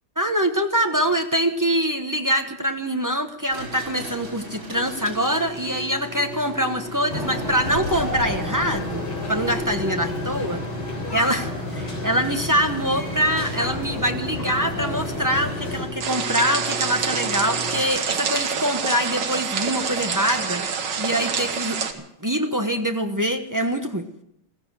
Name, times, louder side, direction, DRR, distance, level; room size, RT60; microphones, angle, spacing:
voice 1, 0.2-9.0 9.3-10.6 11.1-20.7 21.0-24.0, equal, 20° right, 5 dB, 0.5 m, -24 dB
sound 1, 3.5-18.2, left 1 dB, 80° right, 6.0 m, -35 dB
sound 2, 7.1-15.9, left 1 dB, 55° left, 4.1 m, -31 dB
sound 3, 16.0-21.9, right 6 dB, 60° right, 1.9 m, -26 dB
15.5 x 15.0 x 6.2 m, 0.78 s
omnidirectional pair, 2.2 m